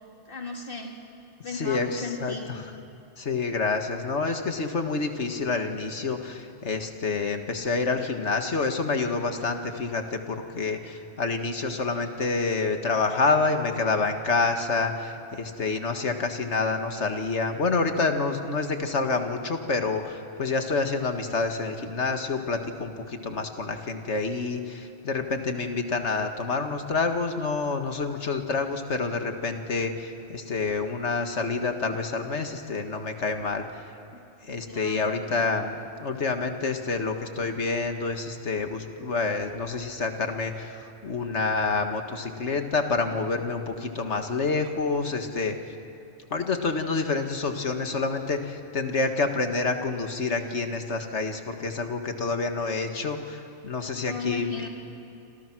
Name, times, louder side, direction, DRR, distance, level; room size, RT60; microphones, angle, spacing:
voice 1, 0.3-1.0 1.4-2.5 34.7-35.3 53.9-54.7, left 3 dB, 50° left, 1 dB, 3.1 m, -36 dB
voice 2, 1.5-2.6 3.2-33.7 34.4-45.6 46.3-54.6, left 4 dB, 80° left, 6 dB, 2.1 m, -28 dB
28.0 x 27.0 x 6.2 m, 2.8 s
omnidirectional pair, 1.2 m